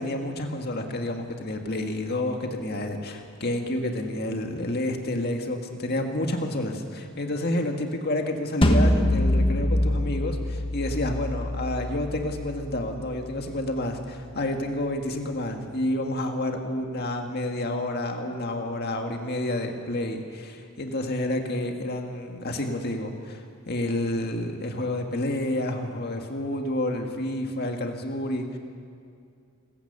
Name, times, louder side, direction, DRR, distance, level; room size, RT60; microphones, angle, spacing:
voice 1, 0.0-28.6, left 1 dB, 45° left, 3 dB, 2.0 m, -29 dB
sound 1, 8.6-13.7, left 1 dB, 25° left, 1.3 m, -25 dB
27.0 x 15.5 x 6.9 m, 2.4 s
head